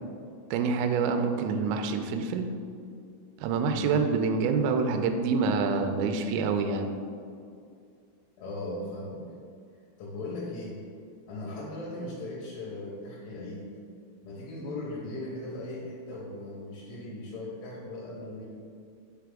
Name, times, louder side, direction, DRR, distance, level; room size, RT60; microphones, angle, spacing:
voice 1, 0.5-2.5 3.4-6.9, right 5 dB, 85° right, 5 dB, 2.6 m, -26 dB
voice 2, 8.4-9.2 10.0-10.8 11.3-13.7 14.2-18.5, left 2 dB, 85° left, -6 dB, 3.4 m, -38 dB
6.0 x 4.9 x 3.5 m, 2.3 s
omnidirectional pair, 5.4 m